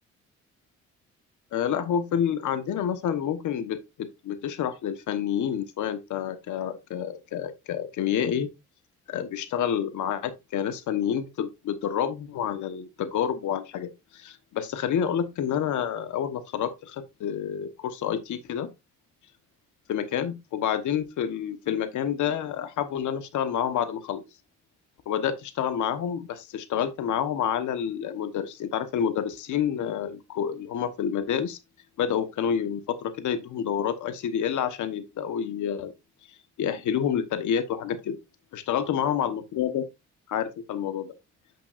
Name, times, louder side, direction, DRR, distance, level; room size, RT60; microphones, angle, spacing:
voice 1, 1.5-8.5 9.1-18.7 19.9-24.2 25.1-31.6 32.0-35.9 36.6-38.2 38.5-39.8 40.3-41.1, left 9 dB, 75° left, 1.3 m, -28 dB
8.9 x 5.9 x 2.5 m
cardioid pair, 90°, 30 cm